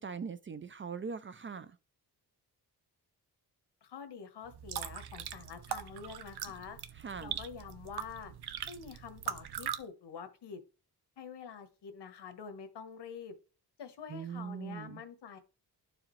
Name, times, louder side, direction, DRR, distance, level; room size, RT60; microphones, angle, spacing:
voice 1, 0.0-1.8 7.0-7.3 14.1-15.0, right 6 dB, 30° right, 0.4 m, -41 dB
voice 2, 3.8-6.8 7.2-8.3 8.6-10.6 11.2-13.3 13.8-15.4, left 6 dB, 80° left, 1.3 m, -46 dB
sound 1, 4.5-9.8, right 10 dB, 70° right, 0.7 m, -41 dB
12.0 x 4.9 x 3.1 m
wide cardioid pair, 125°, 40 cm